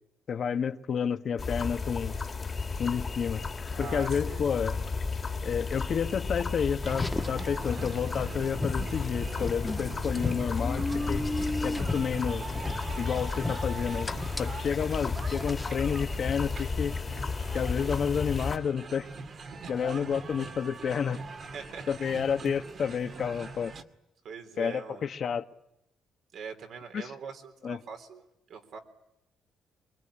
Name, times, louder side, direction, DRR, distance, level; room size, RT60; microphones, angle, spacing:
voice 1, 0.3-2.1 2.8-3.4 3.8-4.8 5.4-11.2 11.6-12.4 13.0-14.1 14.4-16.9 17.5-19.1 19.7-21.2 21.9-23.7 24.6-25.4 26.9-27.1 27.6-27.8, left 7 dB, 55° left, 1.3 m, -30 dB
sound 1, 1.4-18.6, left 4 dB, 35° left, 2.1 m, -33 dB
voice 2, 3.7-4.4 19.5-20.1 21.5-22.2 22.9-23.0 24.2-25.1 26.3-28.8, right 6 dB, 70° right, 3.8 m, -43 dB
sound 2, 6.8-23.8, right 4 dB, 45° right, 2.1 m, -43 dB
Car, 6.9-15.9, left 2 dB, 15° left, 1.3 m, -36 dB
24.0 x 23.0 x 10.0 m
cardioid pair, 90°, 0 cm